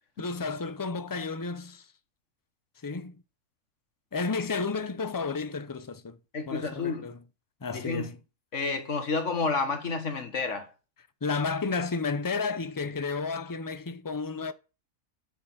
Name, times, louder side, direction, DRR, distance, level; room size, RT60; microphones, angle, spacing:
voice 1, 0.2-1.9 2.8-3.2 4.1-6.2 6.5-7.2 7.6-8.2 11.2-14.5, left 4 dB, 30° left, 0.4 m, -32 dB
voice 2, 6.3-7.1 7.7-8.1 8.5-10.7, left 4 dB, 55° left, 1.8 m, -30 dB
8.2 x 6.6 x 5.8 m
omnidirectional pair, 1.6 m